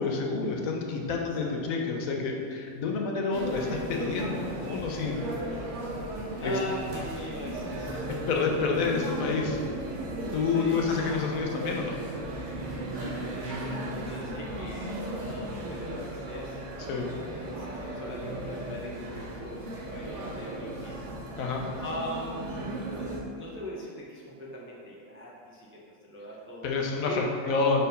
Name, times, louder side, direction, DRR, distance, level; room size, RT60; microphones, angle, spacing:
voice 1, 0.0-5.2 6.4-6.5 8.3-9.6 10.3-12.0 16.9-17.1 21.4-21.6 26.6-27.9, left 4 dB, 80° left, 0 dB, 1.2 m, -28 dB
sound 1, 3.3-23.2, right 1 dB, 65° right, 1.2 m, -36 dB
voice 2, 6.4-8.8 10.4-10.8 12.9-17.0 17.6-19.6 19.9-21.1 21.8-22.5 22.9-26.7 27.0-27.6, left 1 dB, 20° right, -5 dB, 0.3 m, -40 dB
4.5 x 4.0 x 5.2 m, 2.2 s
omnidirectional pair, 1.4 m